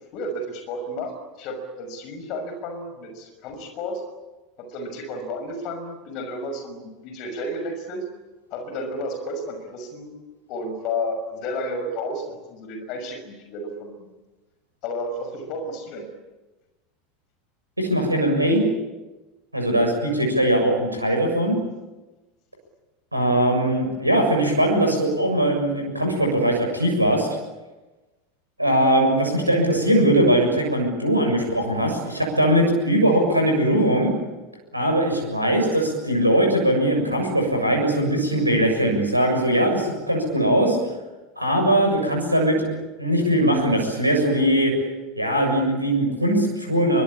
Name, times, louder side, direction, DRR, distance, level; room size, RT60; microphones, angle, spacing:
voice 1, 0.1-1.1 1.4-4.0 4.6-8.0 8.5-10.1 10.5-13.9 14.8-16.1, left 1 dB, 50° left, 6 dB, 6.0 m, -32 dB
voice 2, 17.8-18.6 19.5-21.6 23.1-27.3 28.6-34.1 34.7-40.8 41.4-42.7 43.0-44.7 45.2-47.0, right 1 dB, 90° right, 2 dB, 7.1 m, -20 dB
26.0 x 24.0 x 8.8 m, 1.1 s
figure-of-eight pair, 75°, 0 cm